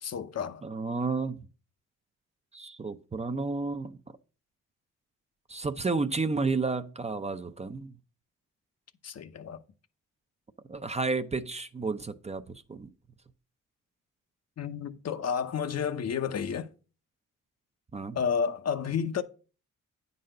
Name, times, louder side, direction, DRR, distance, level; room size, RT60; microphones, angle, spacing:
voice 1, 0.0-0.6 9.0-9.6 14.6-16.7 18.1-19.2, left 7 dB, 50° left, 0.8 m, -31 dB
voice 2, 0.6-1.4 2.5-4.0 5.5-8.0 10.7-12.9 17.9-18.2, right 3 dB, 20° right, 0.6 m, -31 dB
9.3 x 4.1 x 6.5 m
cardioid pair, 75°, 32 cm